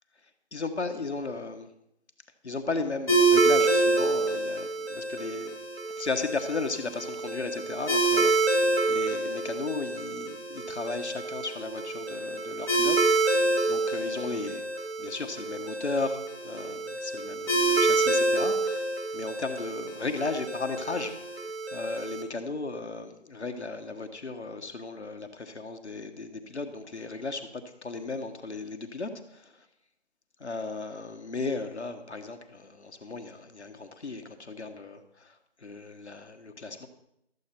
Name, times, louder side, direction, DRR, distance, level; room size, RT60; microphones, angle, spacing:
voice 1, 0.5-1.7 2.4-5.6 5.9-8.6 8.9-14.7 15.0-21.1 21.7-29.7 30.4-36.9, left 3 dB, 80° left, 7 dB, 1.3 m, -35 dB
sound 1, 3.1-22.2, right 3 dB, 60° right, 2.0 m, -27 dB
13.0 x 8.2 x 4.5 m, 0.79 s
figure-of-eight pair, 180°, 33 cm